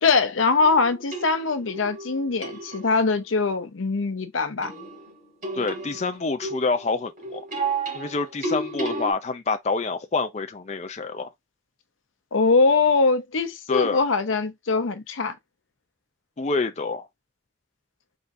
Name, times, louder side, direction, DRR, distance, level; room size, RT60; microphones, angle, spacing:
voice 1, 0.0-4.7 12.3-15.3, left 4 dB, 85° left, 0.7 m, -22 dB
sound 1, 0.6-3.1 4.6-9.1, right 3 dB, 45° right, 2.6 m, -33 dB
voice 2, 5.5-7.4 7.9-11.3 13.7-14.0 16.4-17.1, left 4 dB, 35° left, 0.4 m, -27 dB
4.1 x 3.5 x 2.6 m
head